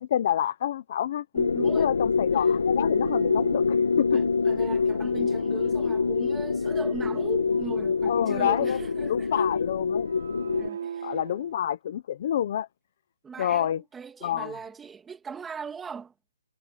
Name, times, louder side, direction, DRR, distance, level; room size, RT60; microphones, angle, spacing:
voice 1, 0.0-1.2 1.7-4.2 8.1-8.8 9.1-10.1 11.0-12.7 13.4-13.8 14.2-14.5, left 10 dB, 30° left, 0.8 m, -28 dB
sound 1, 1.3-10.7, left 5 dB, 75° left, 1.7 m, -25 dB
voice 2, 1.3-1.9 4.1-9.5 10.6-11.1 13.2-16.1, right 6 dB, 5° right, 2.6 m, -39 dB
sound 2, 2.6-11.6, right 8 dB, 40° right, 5.9 m, -42 dB
hypercardioid pair, 180°, 0 cm